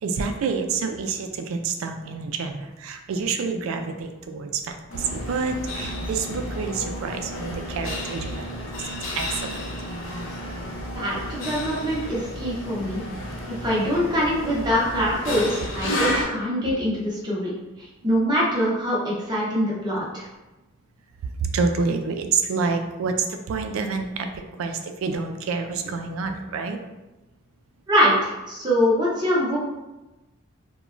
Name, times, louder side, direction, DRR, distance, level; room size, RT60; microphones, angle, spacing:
voice 1, 0.0-8.6 8.8-9.6 21.2-24.3 24.6-26.8, right 4 dB, 75° right, 6 dB, 0.3 m, -28 dB
sound 1, 4.9-16.2, left 1 dB, 65° left, 0.6 m, -32 dB
voice 2, 11.0-13.0 13.5-17.5 17.8-20.3 27.9-29.6, equal, 20° right, -6 dB, 0.7 m, -24 dB
3.0 x 2.2 x 2.4 m, 1.0 s
head